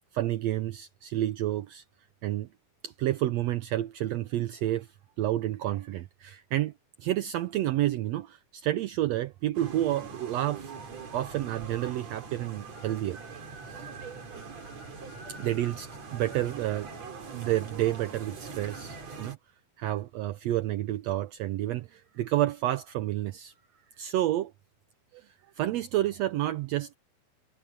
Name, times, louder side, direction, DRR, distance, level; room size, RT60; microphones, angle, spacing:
voice 1, 0.1-1.8 2.2-2.5 2.8-4.9 5.2-6.7 7.0-10.7 11.1-13.2 13.7-13.8 15.4-16.9 17.3-19.4 19.8-23.5 24.0-24.5 25.1-25.3 25.6-26.9, right 14 dB, 85° right, 1.5 m, -30 dB
sound 1, 9.5-19.3, right 4 dB, 50° right, 4.6 m, -42 dB
omnidirectional pair, 3.8 m